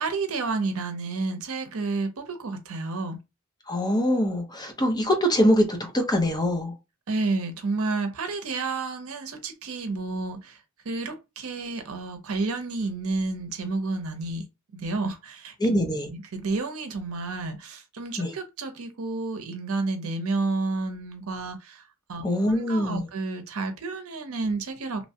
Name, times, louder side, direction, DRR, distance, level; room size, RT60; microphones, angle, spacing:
voice 1, 0.0-3.2 7.1-10.6 10.8-14.5 14.7-15.8 16.1-25.1, right 3 dB, 70° right, 0.6 m, -30 dB
voice 2, 3.7-6.7 15.6-16.1 18.2-18.3 22.2-23.1, equal, 20° left, 0.6 m, -23 dB
3.0 x 2.1 x 2.7 m
head